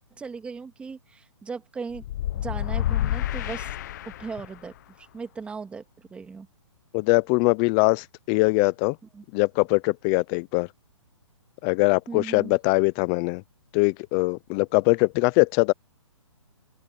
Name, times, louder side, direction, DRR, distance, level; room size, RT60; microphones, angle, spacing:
voice 1, 0.2-2.0 2.3-3.7 4.2-6.5 9.1-9.2 12.1-12.6, right 5 dB, 5° right, 2.7 m, -38 dB
sound 1, 1.9-4.6, left 13 dB, 35° left, 0.8 m, -29 dB
voice 2, 6.9-9.0 9.3-10.7 11.6-13.4 13.7-15.7, left 28 dB, 15° left, 0.4 m, -22 dB
open air
hypercardioid pair, 160°, 16 cm